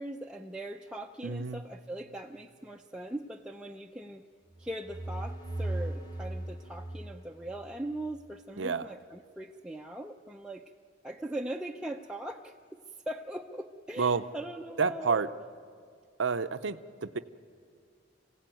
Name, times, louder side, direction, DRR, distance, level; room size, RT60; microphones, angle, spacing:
voice 1, 0.0-4.2 4.6-10.7 11.0-15.2, right 1 dB, 5° right, 1 dB, 0.6 m, -40 dB
voice 2, 1.2-1.6 8.6-8.9 14.0-14.2 14.8-15.3 16.2-17.2, right 5 dB, 75° right, 12 dB, 0.7 m, -29 dB
sound 1, 4.5-8.2, right 1 dB, 20° left, 1.7 m, -38 dB
26.5 x 16.5 x 9.1 m, 2.2 s
head